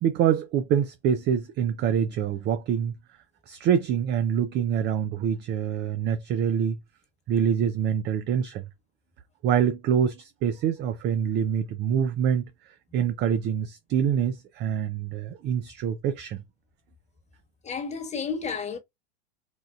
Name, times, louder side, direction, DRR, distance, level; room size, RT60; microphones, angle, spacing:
voice 1, 0.0-2.9 3.5-6.8 7.3-8.6 9.4-16.4, right 8 dB, 35° right, 0.4 m, -25 dB
voice 2, 17.6-18.8, left 5 dB, 20° left, 1.3 m, -31 dB
4.3 x 2.4 x 2.3 m
hypercardioid pair, 95°, 33 cm